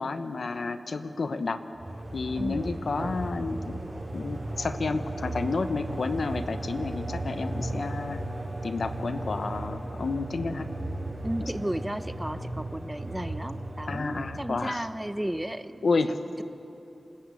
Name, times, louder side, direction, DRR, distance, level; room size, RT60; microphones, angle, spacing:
voice 1, 0.0-1.6 2.1-3.9 4.1-8.2 8.6-10.7 11.4-11.5 13.9-14.8 15.8-16.2, left 3 dB, 75° left, 10 dB, 1.0 m, -30 dB
sound 1, 1.7-14.8, right 1 dB, 40° right, 4.6 m, -36 dB
sound 2, 2.3-7.4, right 2 dB, 85° right, 4.6 m, -45 dB
voice 2, 2.4-2.8 11.2-16.4, right 1 dB, 10° right, 12 dB, 0.8 m, -34 dB
27.0 x 14.0 x 8.5 m, 2.9 s
wide cardioid pair, 65°, 0 cm